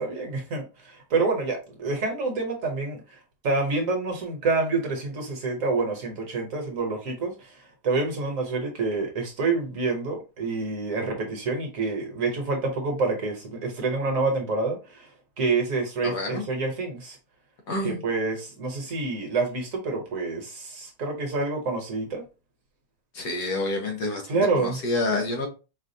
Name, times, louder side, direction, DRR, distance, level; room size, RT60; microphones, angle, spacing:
voice 1, 0.0-3.2 3.4-7.5 7.8-15.1 15.4-17.2 17.8-22.2 24.3-24.8, right 3 dB, 55° right, 1.2 m, -27 dB
voice 2, 16.0-16.4 17.7-18.0 23.1-25.5, left 2 dB, 75° left, 1.6 m, -28 dB
4.8 x 2.3 x 2.7 m
omnidirectional pair, 1.8 m